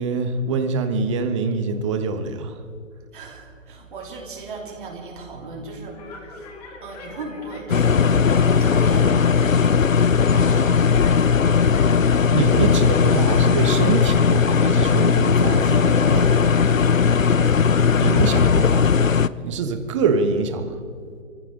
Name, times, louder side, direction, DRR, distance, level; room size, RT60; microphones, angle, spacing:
voice 1, 0.0-2.6 12.3-15.7 16.1-16.2 18.0-18.9 19.4-20.8, right 4 dB, 25° right, 8 dB, 1.1 m, -24 dB
voice 2, 3.1-9.3 9.7-10.8 15.6-16.6 19.4-19.6, right 3 dB, 40° right, -1 dB, 3.3 m, -36 dB
sound 1, 5.9-15.1 15.4-19.6, left 3 dB, 30° left, 2.9 m, -42 dB
sound 2, 7.7-19.3, left 6 dB, 90° left, 0.6 m, -17 dB
24.0 x 15.0 x 3.8 m, 2.1 s
figure-of-eight pair, 140°, 38 cm